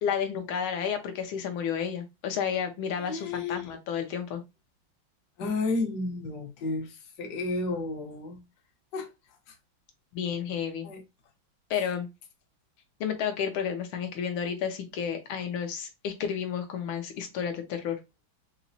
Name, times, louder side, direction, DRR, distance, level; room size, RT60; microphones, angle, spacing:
voice 1, 0.0-4.4 10.1-10.9 11.7-12.1 13.0-18.0, left 7 dB, 85° left, 1.5 m, -31 dB
voice 2, 3.0-3.7 5.4-8.4 8.9-9.1 9.5-9.6 10.8-11.0, left 3 dB, 60° left, 1.3 m, -32 dB
4.2 x 2.9 x 2.6 m
omnidirectional pair, 2.2 m